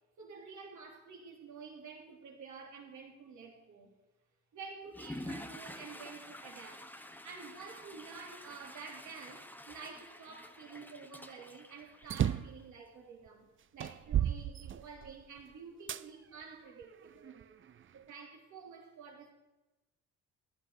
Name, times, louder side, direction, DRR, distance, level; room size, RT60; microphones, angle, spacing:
voice 1, 0.2-4.0 4.5-6.9 7.2-13.4 13.7-17.4 17.9-19.3, right 5 dB, 70° right, 1 dB, 3.6 m, -50 dB
Water / Toilet flush, 4.9-12.6, left 1 dB, 5° left, 1.1 m, -48 dB
sound 1, 12.0-12.6 13.3-13.4 13.8-15.2 15.9-16.0 16.8-17.8, right 10 dB, 40° right, 0.6 m, -33 dB
16.0 x 12.0 x 5.0 m, 1.1 s
cardioid pair, 90°, 30 cm